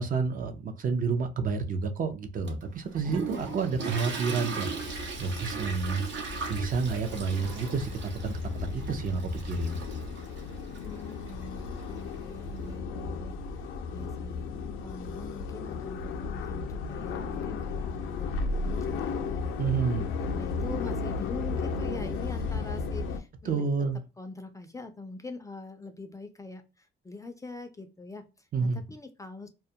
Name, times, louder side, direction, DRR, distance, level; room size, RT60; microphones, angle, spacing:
voice 1, 0.0-4.7 5.2-6.0 6.5-9.8 19.6-20.1 23.4-24.0 28.5-28.8, right 4 dB, 45° right, 0.5 m, -29 dB
Toilet flush, 2.5-12.7, right 4 dB, 70° right, 0.8 m, -39 dB
voice 2, 3.2-3.7 10.8-14.5 14.8-19.2 19.7-23.7 24.2-29.5, left 3 dB, 15° left, 0.3 m, -44 dB
sound 1, 4.7-23.2, left 4 dB, 85° left, 0.4 m, -35 dB
2.2 x 2.1 x 2.6 m
cardioid pair, 90°, 20 cm